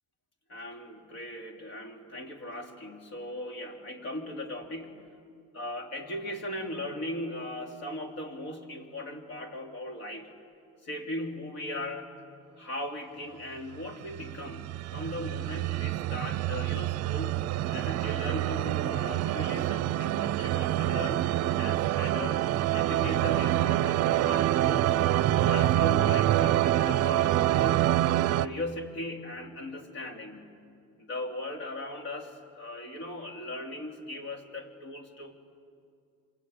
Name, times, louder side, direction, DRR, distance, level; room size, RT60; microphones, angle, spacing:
voice 1, 0.5-5.0 5.5-10.3 10.8-12.2 12.6-17.4 17.7-24.9 25.4-27.9 28.3-30.5 31.0-35.3, left 1 dB, 55° left, 4 dB, 3.1 m, -38 dB
sound 1, 14.1-28.5, right 13 dB, 55° right, 0.6 m, -26 dB
26.5 x 26.5 x 8.6 m, 2.3 s
cardioid pair, 170°, 30 cm